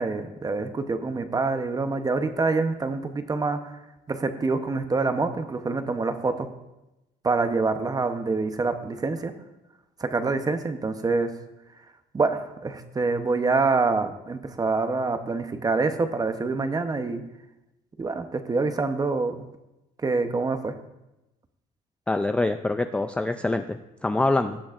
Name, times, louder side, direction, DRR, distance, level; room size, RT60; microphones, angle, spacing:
voice 1, 0.0-3.7 4.1-6.5 7.2-9.3 10.0-11.3 12.1-17.2 18.0-19.3 20.0-20.7, right 3 dB, 20° right, 8 dB, 0.8 m, -26 dB
voice 2, 22.1-24.6, left 2 dB, 5° left, 8 dB, 0.3 m, -25 dB
18.0 x 6.1 x 2.5 m, 0.96 s
cardioid pair, 110°, 17 cm